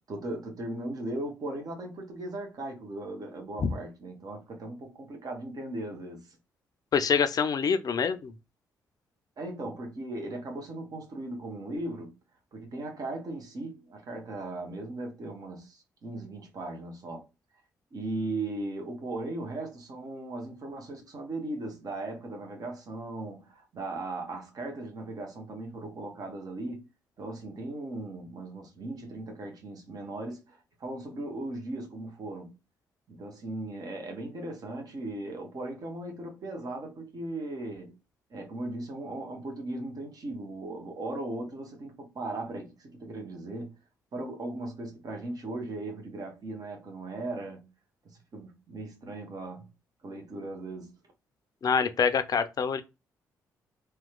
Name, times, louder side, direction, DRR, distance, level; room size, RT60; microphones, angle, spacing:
voice 1, 0.0-6.4 9.4-12.2 12.5-17.3 17.9-26.9 27.2-32.5 33.1-38.0 38.3-43.7 44.1-47.7 48.0-49.7 50.0-50.9, right 2 dB, 45° right, 0.9 m, -38 dB
voice 2, 6.9-8.3 51.6-52.8, left 6 dB, 45° left, 0.5 m, -25 dB
2.9 x 2.2 x 2.2 m
hypercardioid pair, 40°, 9 cm